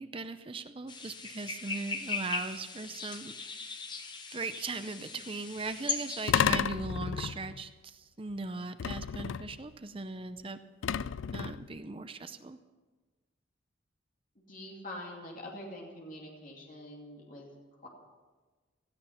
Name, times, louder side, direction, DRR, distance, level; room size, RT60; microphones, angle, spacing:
voice 1, 0.0-3.9 4.3-10.6 11.3-12.6, right 3 dB, 25° right, 11 dB, 0.6 m, -39 dB
sound 1, 0.9-6.3, left 4 dB, 20° left, 1.0 m, -39 dB
sound 2, 6.3-7.7 8.8-9.7 10.8-11.8, left 7 dB, 80° left, 0.4 m, -31 dB
voice 2, 14.4-17.5 17.8-17.9, left 1 dB, 40° left, -1 dB, 2.6 m, -45 dB
17.5 x 14.0 x 5.8 m, 1.3 s
head